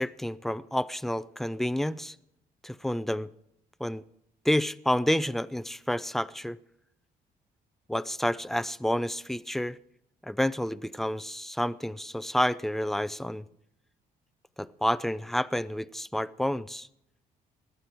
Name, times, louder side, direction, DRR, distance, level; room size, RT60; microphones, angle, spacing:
voice 1, 0.0-2.1 2.6-3.3 3.8-4.0 4.4-6.6 7.9-9.8 10.2-13.4 14.6-16.9, equal, ahead, 17 dB, 0.5 m, -29 dB
17.5 x 11.5 x 4.6 m, 0.77 s
supercardioid pair, 65°, 18 cm